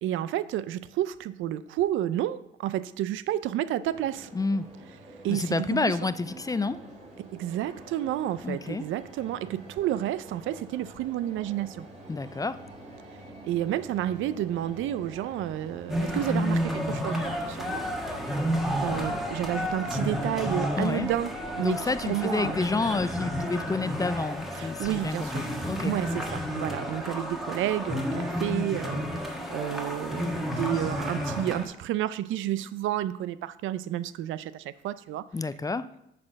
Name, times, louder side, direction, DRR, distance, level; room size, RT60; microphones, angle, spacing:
voice 1, 0.0-4.3 5.2-5.9 7.3-11.8 13.4-17.8 18.8-22.6 24.5-25.5 25.8-29.1 29.5-35.2, right 12 dB, 80° right, 16 dB, 0.4 m, -30 dB
sound 1, 3.8-23.8, right 1 dB, 35° right, 3.1 m, -46 dB
voice 2, 4.3-4.7 5.3-6.8 8.4-8.8 12.1-12.6 20.8-21.1 21.6-26.0 35.3-35.9, left 3 dB, 20° left, 14 dB, 0.3 m, -29 dB
sound 2, 15.9-31.6, equal, ahead, 1.4 m, -31 dB
8.6 x 4.2 x 6.4 m, 0.79 s
cardioid pair, 90°, 20 cm